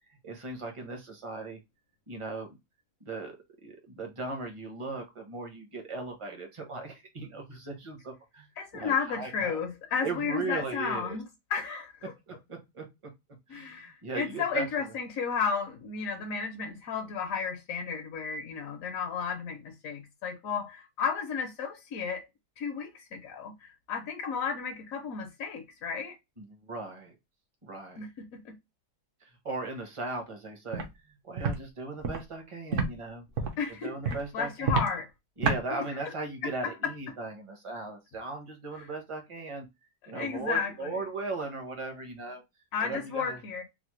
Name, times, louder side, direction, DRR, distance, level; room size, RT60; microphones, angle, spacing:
voice 1, 0.2-1.6 2.1-2.6 3.0-3.4 3.6-8.5 8.7-9.6 10.0-11.2 12.3-12.8 13.5-14.7 26.4-27.1 27.6-28.0 29.2-33.2 33.8-34.8 35.4-39.7 40.1-42.4 42.8-43.4, right 3 dB, 30° right, 0.6 m, -38 dB
voice 2, 8.6-12.1 13.5-22.3 22.6-26.1 28.0-28.5 33.6-35.1 35.7-35.8 36.4-36.7 38.8-38.9 40.1-40.9 42.7-43.6, left 6 dB, 65° left, 0.9 m, -33 dB
Walk footsteps, 30.7-30.9 31.4-31.6 32.0-32.2 32.7-32.9 33.3-33.6 34.0-34.2 34.6-34.9 35.4-35.6, right 4 dB, 55° right, 1.0 m, -27 dB
4.1 x 2.0 x 3.0 m
omnidirectional pair, 1.9 m